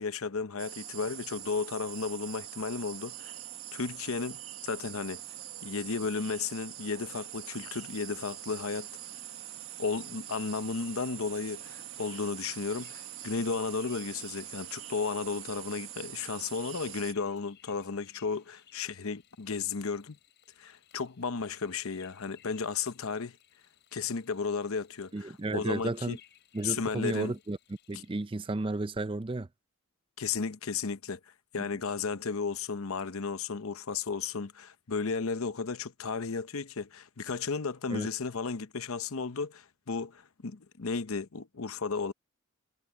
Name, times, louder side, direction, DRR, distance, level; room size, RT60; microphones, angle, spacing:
voice 1, 0.0-3.3 3.7-5.2 5.6-8.9 9.8-20.2 20.6-23.4 23.9-26.2 26.6-27.3 27.9-28.0 30.2-31.2 31.5-42.1, left 5 dB, 75° left, 0.8 m, -34 dB
sound 1, 0.6-17.1, right 12 dB, 70° right, 1.5 m, -44 dB
sound 2, 10.3-28.8, left 10 dB, 50° left, 5.6 m, -62 dB
voice 2, 25.1-26.2 26.5-27.6 27.9-29.5 37.9-38.1, right 2 dB, 25° right, 0.4 m, -33 dB
head